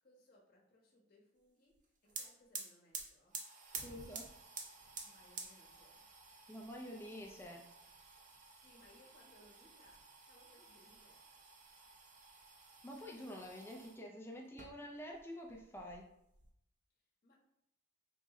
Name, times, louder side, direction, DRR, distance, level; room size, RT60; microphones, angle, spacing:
voice 1, 0.0-3.4 5.0-6.0 8.4-10.0 10.3-11.3 17.2-17.4, left 1 dB, 50° left, -3 dB, 1.0 m, -67 dB
sound 1, 1.8-1.9 2.1-14.0 14.5-15.2 15.5-16.5, right 4 dB, 40° right, 0.5 m, -51 dB
voice 2, 3.8-4.3 6.5-7.7 12.8-16.1, equal, 10° left, 1 dB, 0.4 m, -48 dB
3.7 x 2.1 x 3.6 m, 0.82 s
head